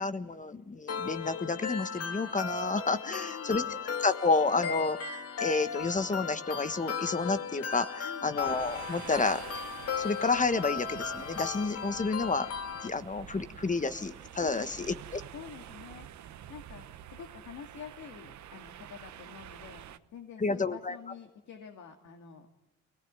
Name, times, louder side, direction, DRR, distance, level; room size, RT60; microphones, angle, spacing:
voice 1, 0.0-3.6 4.0-9.4 10.0-12.5 12.8-15.2 20.4-20.9, left 3 dB, 25° left, 11 dB, 1.3 m, -30 dB
sound 1, 0.9-12.9, left 6 dB, 55° left, 2.0 m, -36 dB
voice 2, 3.0-3.7 8.0-8.4 14.4-14.7 15.3-22.5, left 7 dB, 70° left, 3 dB, 2.3 m, -48 dB
sound 2, 8.4-20.0, right 11 dB, 70° right, 1.1 m, -47 dB
24.0 x 18.5 x 9.6 m, 1.1 s
cardioid pair, 90°, 30 cm